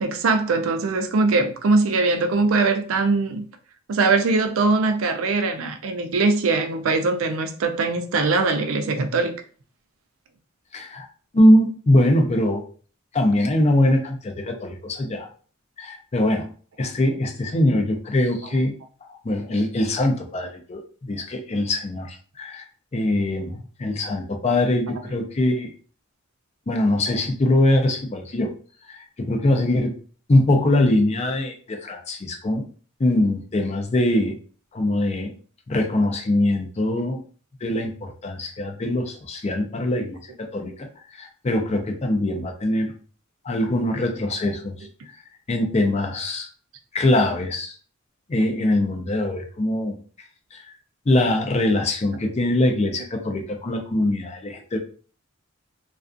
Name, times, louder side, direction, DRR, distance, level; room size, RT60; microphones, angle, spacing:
voice 1, 0.0-3.4 3.9-9.3 18.5-18.6, right 3 dB, 90° right, 0.4 m, -21 dB
voice 2, 10.7-11.1 11.3-12.6 13.1-15.3 15.8-16.5 16.8-18.7 19.1-22.6 22.9-25.7 26.7-28.5 28.9-30.0 30.3-32.7 33.0-34.4 34.7-35.3 35.7-37.2 37.6-40.9 41.1-42.9 43.4-44.8 45.1-45.2 45.5-46.5 46.9-47.8 48.3-50.0 50.5-50.6 51.1-54.8, left 1 dB, 35° left, 0.4 m, -22 dB
2.3 x 2.3 x 2.4 m
head